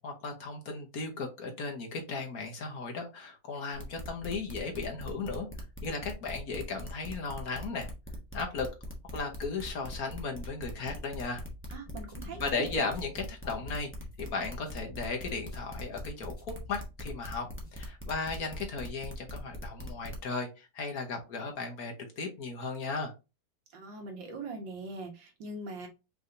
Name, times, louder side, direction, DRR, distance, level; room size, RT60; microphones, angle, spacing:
voice 1, 0.0-5.5 5.8-7.9 8.3-8.7 9.1-11.4 12.2-13.9 14.2-17.4 17.7-23.1, left 4 dB, 55° left, 1.5 m, -36 dB
sound 1, 3.7-20.2, equal, 10° left, 0.8 m, -42 dB
sound 2, 11.2-12.6 12.9-14.3 14.6-16.0 16.4-17.7, left 1 dB, 30° left, 2.6 m, -51 dB
voice 2, 11.7-12.9 23.7-25.9, right 3 dB, 90° right, 2.0 m, -41 dB
5.5 x 3.4 x 2.6 m
omnidirectional pair, 2.0 m